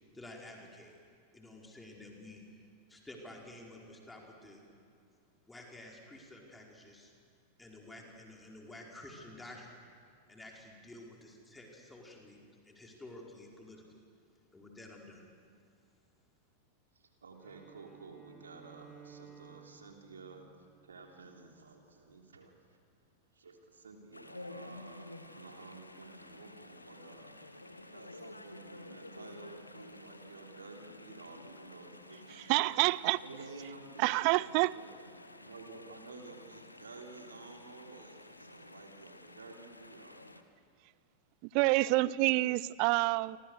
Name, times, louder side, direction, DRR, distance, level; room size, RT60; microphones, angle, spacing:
voice 1, 0.1-0.9 1.3-2.4 2.9-4.6 5.4-7.1 7.6-9.8 10.3-12.4 12.6-14.0 14.5-15.2, left 1 dB, 10° left, 0 dB, 5.0 m, -51 dB
voice 2, 16.9-20.4 20.8-22.5 23.3-27.4 27.9-32.3 32.6-32.7 33.2-34.9 35.4-40.3, right 3 dB, 70° right, 3 dB, 3.4 m, -52 dB
Bowed string instrument, 17.4-21.6, right 7 dB, 15° right, 4.8 m, -57 dB
Chatter / Stream, 24.1-40.4, left 2 dB, 85° left, 1.4 m, -51 dB
voice 3, 32.3-33.2 34.0-34.7 41.4-43.4, right 21 dB, 45° right, 22 dB, 0.6 m, -28 dB
29.5 x 25.0 x 6.6 m, 2.4 s
figure-of-eight pair, 90°, 0 cm